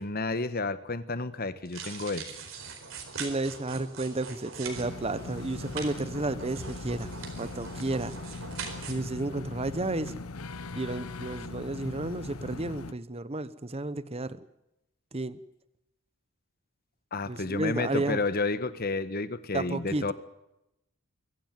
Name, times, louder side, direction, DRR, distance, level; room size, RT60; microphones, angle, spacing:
voice 1, 0.0-2.3 17.1-20.1, left 3 dB, 45° left, 13 dB, 1.2 m, -31 dB
sound 1, 1.7-8.9, right 5 dB, 60° right, 4.6 m, -42 dB
voice 2, 3.2-8.1 8.9-10.1 10.8-14.4 15.1-15.4 17.3-18.2 19.5-20.1, right 2 dB, 25° right, 15 dB, 0.9 m, -32 dB
sound 2, 4.7-12.9, left 3 dB, 80° left, 0.9 m, -40 dB
23.5 x 15.0 x 9.3 m, 0.88 s
head